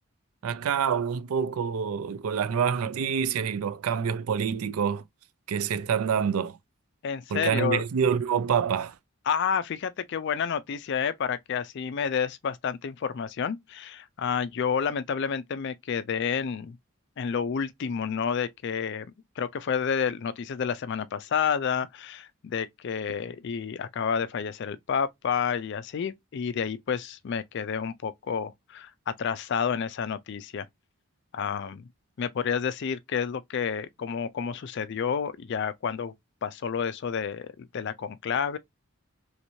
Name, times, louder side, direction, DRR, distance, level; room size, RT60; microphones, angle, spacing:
voice 1, 0.4-5.0 5.5-6.6 7.3-8.9, right 7 dB, 80° right, 0.4 m, -27 dB
voice 2, 7.0-7.8 9.3-16.8 17.2-30.7 31.3-31.9 32.2-36.1 36.4-38.6, left 7 dB, 55° left, 0.3 m, -30 dB
3.1 x 3.0 x 2.6 m
head